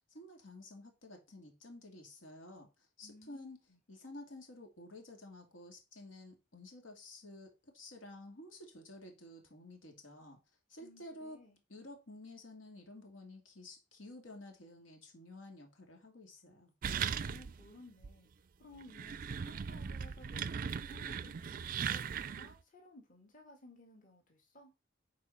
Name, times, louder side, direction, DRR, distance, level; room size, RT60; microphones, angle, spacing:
voice 1, 0.1-2.7 3.0-3.6 3.9-10.4 10.7-11.4 11.7-16.7, left 1 dB, 85° left, 2.5 m, -52 dB
voice 2, 3.0-3.8 10.8-11.6 17.2-18.3 18.6-24.7, left 1 dB, 40° left, 2.1 m, -58 dB
sound 1, 16.8-17.7 18.0-18.1 18.7-22.5, right 7 dB, 45° right, 0.4 m, -38 dB
9.8 x 4.7 x 4.2 m
head